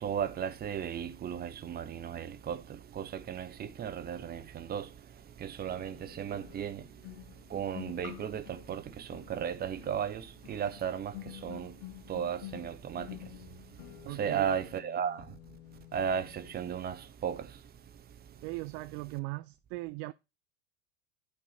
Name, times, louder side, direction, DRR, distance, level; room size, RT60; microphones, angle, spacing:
voice 1, 0.0-4.9 5.4-6.9 7.5-11.7 12.1-13.2 14.1-15.2 15.9-17.5, right 8 dB, 30° right, 1.4 m, -35 dB
sound 1, 4.3-4.4 5.7-16.8 17.0-17.3, left 16 dB, 55° left, 1.2 m, -50 dB
voice 2, 14.1-14.5 18.4-20.1, right 22 dB, 45° right, 0.5 m, -39 dB
12.0 x 5.3 x 4.3 m
figure-of-eight pair, 80°, 32 cm